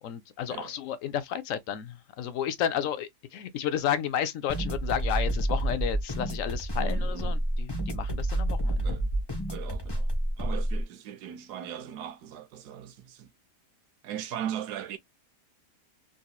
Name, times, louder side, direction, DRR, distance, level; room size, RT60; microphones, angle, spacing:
voice 1, 0.0-9.0, left 9 dB, 70° left, 0.8 m, -32 dB
sound 1, 4.5-10.8, right 1 dB, 15° left, 1.1 m, -29 dB
voice 2, 6.8-7.4 8.8-9.0 9.5-10.1 10.4-13.3 14.0-15.0, right 10 dB, 75° right, 1.2 m, -38 dB
3.9 x 2.7 x 2.3 m
omnidirectional pair, 1.8 m